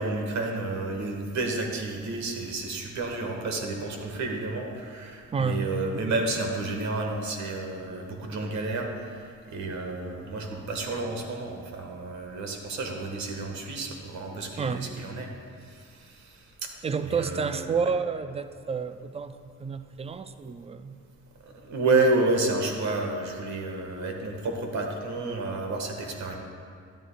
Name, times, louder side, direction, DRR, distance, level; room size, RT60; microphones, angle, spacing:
voice 1, 0.0-15.3 15.6-16.7 17.0-17.9 21.6-26.3, right 3 dB, 65° right, 2 dB, 1.4 m, -30 dB
voice 2, 5.3-5.7 14.6-14.9 16.8-21.0, right 5 dB, 20° right, 11 dB, 0.4 m, -30 dB
12.5 x 10.5 x 2.2 m, 2.2 s
cardioid pair, 90°, 30 cm